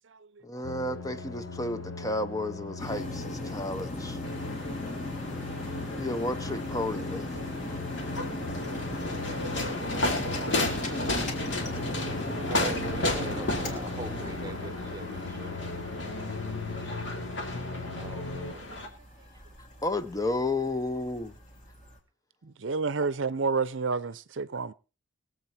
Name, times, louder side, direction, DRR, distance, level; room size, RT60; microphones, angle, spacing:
voice 1, 0.4-4.2 6.0-7.3 7.7-7.8 19.8-21.3, left 2 dB, 15° left, 0.7 m, -32 dB
sound 1, 0.6-18.5, left 3 dB, 80° left, 1.2 m, -39 dB
sound 2, 2.8-22.0, left 1 dB, 40° left, 3.0 m, -39 dB
sound 3, 4.2-18.9, left 1 dB, 60° left, 2.8 m, -34 dB
voice 2, 10.6-11.2 12.4-15.5 17.9-18.7, right 2 dB, 20° right, 0.9 m, -43 dB
voice 3, 22.4-24.7, right 4 dB, 65° right, 0.6 m, -30 dB
21.5 x 8.1 x 4.3 m
head